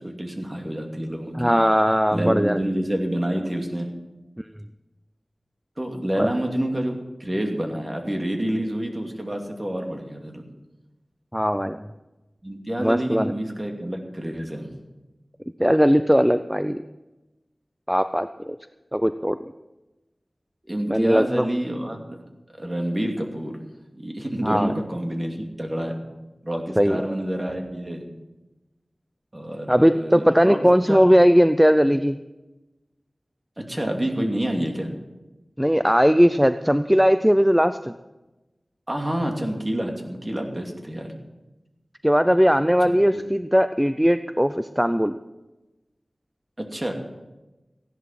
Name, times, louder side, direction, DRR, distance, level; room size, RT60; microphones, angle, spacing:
voice 1, 0.0-1.5 2.1-3.9 5.8-6.9 7.2-10.4 12.4-14.8 20.7-22.2 22.5-23.5 23.9-26.0 26.4-28.1 29.3-31.1 33.7-34.9 38.9-41.1 42.8-43.2 46.6-46.9, right 1 dB, 30° right, 2 dB, 2.7 m, -28 dB
voice 2, 1.3-2.6 4.4-4.5 6.2-6.3 11.3-11.8 12.8-13.3 15.6-16.9 17.9-18.6 18.9-19.4 20.9-21.5 24.4-24.7 26.8-27.0 29.7-32.2 35.6-37.9 42.0-45.2, equal, 5° right, 11 dB, 0.5 m, -19 dB
15.5 x 11.0 x 6.0 m, 1.1 s
wide cardioid pair, 45°, 0 cm